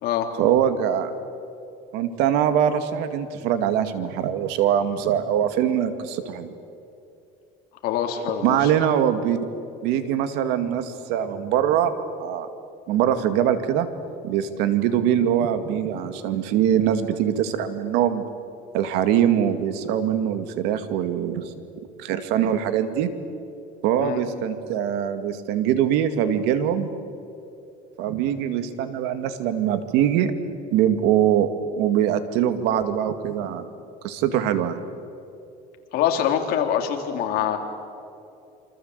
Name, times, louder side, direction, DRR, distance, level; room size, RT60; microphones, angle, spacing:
voice 1, 0.4-1.1 1.9-6.5 8.4-9.4 9.8-12.5 12.9-13.9 14.2-18.3 18.7-21.5 22.0-23.1 23.8-26.9 28.0-30.3 30.7-31.5 31.8-33.6 34.0-34.8, right 10 dB, 85° right, 9 dB, 2.2 m, -23 dB
voice 2, 7.8-8.6 24.0-24.2 35.9-37.6, left 9 dB, 65° left, 4 dB, 3.6 m, -24 dB
27.5 x 26.0 x 8.2 m, 2.7 s
cardioid pair, 145°, 17 cm